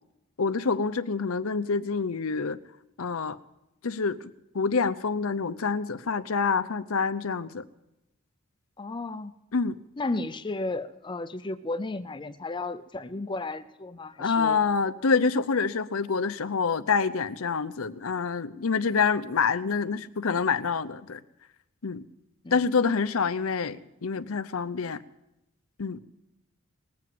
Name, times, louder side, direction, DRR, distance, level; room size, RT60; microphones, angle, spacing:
voice 1, 0.4-2.6 3.0-3.4 3.8-4.2 4.5-7.6 9.5-9.8 14.2-21.2 21.8-22.0 22.5-25.0 25.8-26.0, left 5 dB, 80° left, 12 dB, 0.7 m, -27 dB
voice 2, 8.8-9.3 10.0-14.6 22.4-22.7, left 2 dB, 25° left, 12 dB, 0.6 m, -34 dB
20.0 x 7.8 x 9.2 m, 0.92 s
head